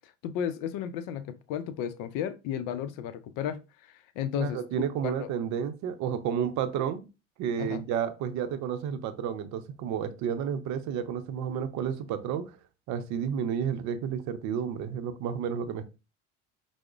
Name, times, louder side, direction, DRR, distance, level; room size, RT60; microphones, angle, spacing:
voice 1, 0.0-4.6 5.0-5.3 7.6-7.8, left 9 dB, 65° left, 0.5 m, -34 dB
voice 2, 4.3-7.0 7.4-12.5 12.9-15.9, right 8 dB, 55° right, 0.6 m, -31 dB
4.7 x 2.0 x 2.3 m
hypercardioid pair, 80°, 35 cm